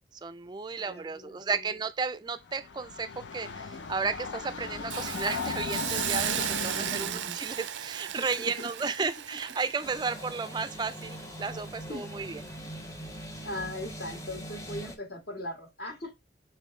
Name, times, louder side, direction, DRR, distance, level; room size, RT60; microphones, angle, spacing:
voice 1, 0.2-12.4, right 4 dB, 25° right, 0.3 m, -33 dB
voice 2, 0.8-1.8 6.4-7.4 8.1-9.1 11.9-12.0 12.5-12.7 13.4-16.1, left 1 dB, 60° left, 1.7 m, -40 dB
Train, 2.4-7.3, left 4 dB, 90° left, 0.6 m, -37 dB
Hiss, 4.9-11.9 12.3-12.5, right 11 dB, 90° right, 0.4 m, -36 dB
sound 1, 9.8-15.0, equal, 20° left, 0.7 m, -42 dB
5.5 x 3.1 x 3.2 m
head